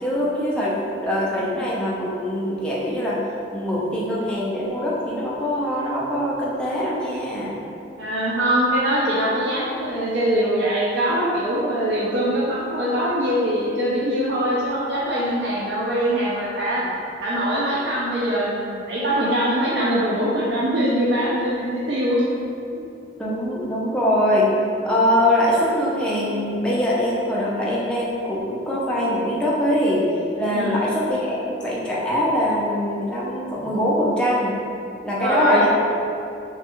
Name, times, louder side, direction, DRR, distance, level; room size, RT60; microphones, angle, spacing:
voice 1, 0.0-3.2 3.5-7.6 23.2-24.5 24.8-30.1 30.4-34.6 35.0-35.7, left 1 dB, 5° left, -7 dB, 0.4 m, -23 dB
voice 2, 8.0-16.8 17.2-22.4 22.7-22.8 30.5-30.8 35.2-35.7, equal, 65° right, -7 dB, 0.4 m, -22 dB
3.2 x 2.2 x 2.9 m, 2.6 s
head